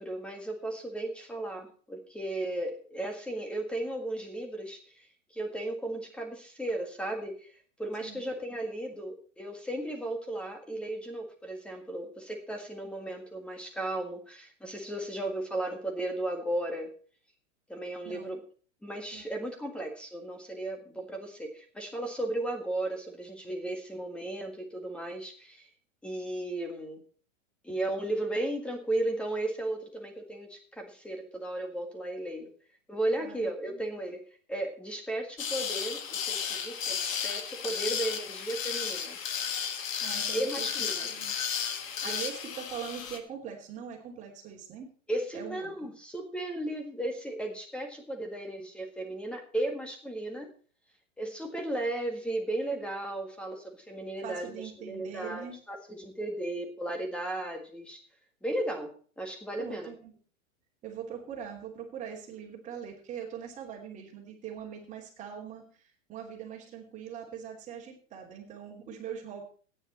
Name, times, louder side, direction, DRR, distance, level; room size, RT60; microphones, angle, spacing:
voice 1, 0.0-5.1 5.3-7.5 7.8-16.9 17.7-18.4 18.8-25.7 26.0-27.0 27.6-32.5 32.9-34.2 34.5-39.2 40.3-41.1 42.0-42.3 45.1-50.5 51.2-58.0 58.4-59.9, right 1 dB, 5° left, 4 dB, 1.7 m, -35 dB
voice 2, 18.0-18.4 19.1-19.3 33.2-33.9 37.9-38.0 40.0-41.3 41.8-44.9 45.3-45.9 54.2-55.6 59.6-60.1 60.8-65.8 66.1-69.4, right 8 dB, 20° right, -1 dB, 3.0 m, -42 dB
sound 1, 35.4-43.2, left 7 dB, 85° left, 1.7 m, -33 dB
13.5 x 9.8 x 4.3 m, 0.41 s
hypercardioid pair, 155°, 39 cm